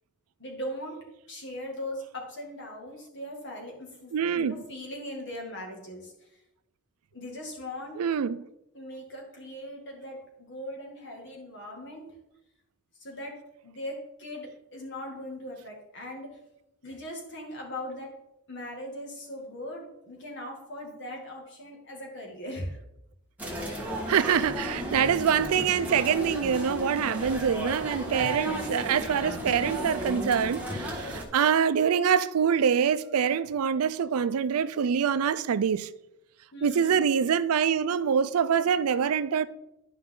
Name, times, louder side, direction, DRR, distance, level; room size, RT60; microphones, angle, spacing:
voice 1, 0.4-1.0 1.3-6.1 7.1-8.3 8.7-12.1 13.0-13.4 13.6-16.4 16.8-18.1 18.5-22.8 36.5-37.1, left 1 dB, 55° left, 2.1 m, -39 dB
voice 2, 4.1-4.6 8.0-8.4 24.1-35.9 36.6-39.5, right 7 dB, 80° right, 0.4 m, -25 dB
sound 1, 23.4-31.2, equal, 5° right, 1.5 m, -34 dB
11.5 x 5.2 x 3.8 m
head